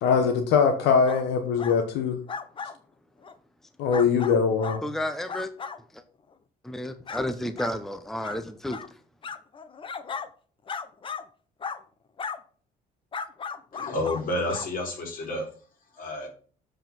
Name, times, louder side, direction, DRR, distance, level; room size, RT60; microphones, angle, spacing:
voice 1, 0.0-2.2 3.8-4.8, left 6 dB, 85° left, 1.2 m, -22 dB
sound 1, 1.0-1.2 1.6-1.8 2.3-2.7 3.2-3.3 3.9-4.8 5.3-5.8 6.3-6.4 7.1-7.2 7.6-7.7 8.2-8.4 8.7-8.9 9.2-10.3 10.7-11.2 11.6-11.8 12.2-12.4 13.1-14.2 14.5-14.7 15.2-15.3, left 5 dB, 30° left, 0.8 m, -36 dB
voice 2, 4.8-5.5 5.9-6.0 6.6-8.8, left 1 dB, ahead, 0.7 m, -31 dB
voice 3, 13.7-15.5 16.0-16.3, left 1 dB, 55° left, 3.8 m, -30 dB
7.7 x 5.0 x 5.9 m
cardioid pair, 110°, 17 cm